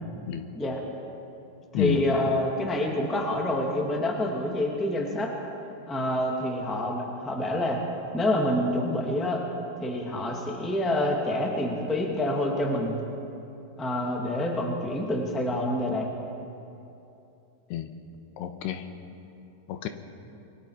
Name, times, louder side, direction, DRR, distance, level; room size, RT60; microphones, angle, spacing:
voice 1, 1.7-5.3 5.9-7.8 8.1-9.4 9.8-13.0 13.8-16.1, left 1 dB, ahead, -1 dB, 1.3 m, -27 dB
voice 2, 18.4-18.9 19.7-19.9, left 12 dB, 85° left, 7 dB, 3.1 m, -29 dB
27.0 x 23.0 x 5.1 m, 2.8 s
omnidirectional pair, 4.8 m